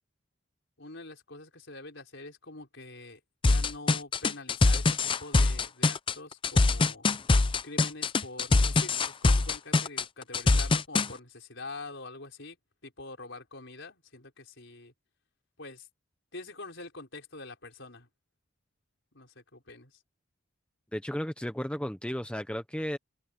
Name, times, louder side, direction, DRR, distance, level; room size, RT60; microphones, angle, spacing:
voice 1, 0.8-7.1 7.6-12.6 12.8-14.9 15.6-15.9 16.3-18.1 19.1-19.9, left 3 dB, 60° left, 5.5 m, -45 dB
sound 1, 3.4-11.1, left 3 dB, 25° left, 0.5 m, -23 dB
voice 2, 20.9-23.0, equal, 5° left, 0.9 m, -34 dB
head